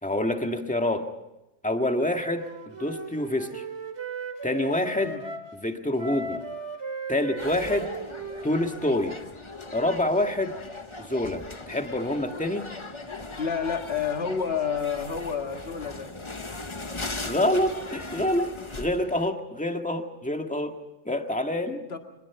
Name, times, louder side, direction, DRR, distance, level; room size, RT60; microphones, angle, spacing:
voice 1, 0.0-1.1 1.6-2.4 2.8-3.6 4.4-5.1 5.5-6.4 7.1-7.9 8.4-9.2 9.7-10.5 11.0-12.7 17.2-18.5 18.8-20.7 21.0-21.8, left 1 dB, 5° left, 4 dB, 1.7 m, -26 dB
Wind instrument woodwind instrument, 2.3-5.5 6.0-9.3, right 4 dB, 75° right, 2.6 m, -37 dB
sound 1, 7.4-19.3, left 2 dB, 25° left, 1.2 m, -39 dB
voice 2, 13.4-16.1 21.9-22.0, left 6 dB, 60° left, 5 dB, 2.0 m, -29 dB
24.0 x 21.5 x 5.9 m, 0.95 s
omnidirectional pair, 1.2 m